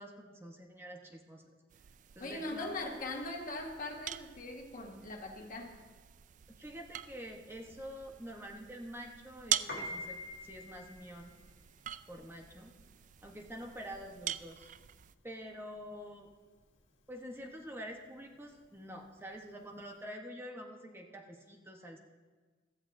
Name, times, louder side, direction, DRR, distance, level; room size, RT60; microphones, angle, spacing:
voice 1, 0.0-1.4 2.1-2.7 6.5-11.4 12.1-12.7 13.2-14.7 15.2-16.3 17.1-22.0, equal, 15° right, 1 dB, 1.0 m, -47 dB
sound 1, 1.7-15.2, right 11 dB, 45° right, 0.3 m, -44 dB
voice 2, 2.2-5.8, left 2 dB, 50° left, 2 dB, 1.5 m, -41 dB
Piano, 9.5-19.9, left 1 dB, 85° left, 1.9 m, -48 dB
15.5 x 13.5 x 2.6 m, 1.4 s
head